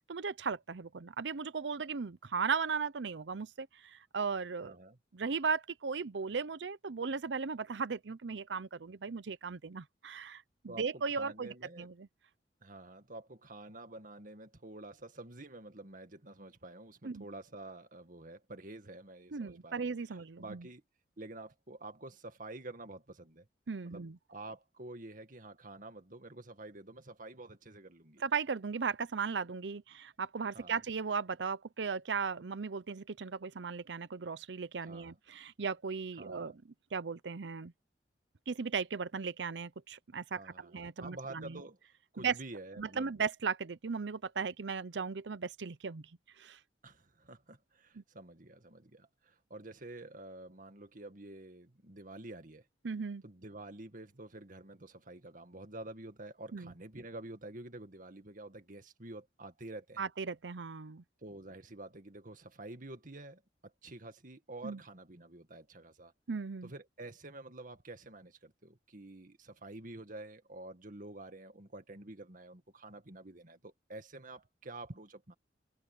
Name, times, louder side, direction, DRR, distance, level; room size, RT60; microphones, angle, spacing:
voice 1, 0.1-4.8 5.1-12.1 17.0-17.3 19.3-20.7 23.7-24.2 28.2-36.6 36.9-37.7 38.5-41.6 42.2-42.3 42.8-46.1 46.4-46.6 48.0-48.1 52.8-53.2 56.5-56.7 60.0-61.0 64.6-64.8 66.3-66.7, right 5 dB, 85° right, 0.7 m, -37 dB
voice 2, 4.6-5.0 10.7-11.9 12.6-19.8 20.4-20.8 21.2-23.5 23.8-28.2 30.5-30.8 34.9-35.1 36.2-36.6 40.4-41.8 42.1-43.1 46.8-52.7 53.2-60.0 61.2-66.1 66.6-75.3, right 2 dB, 50° right, 2.1 m, -49 dB
head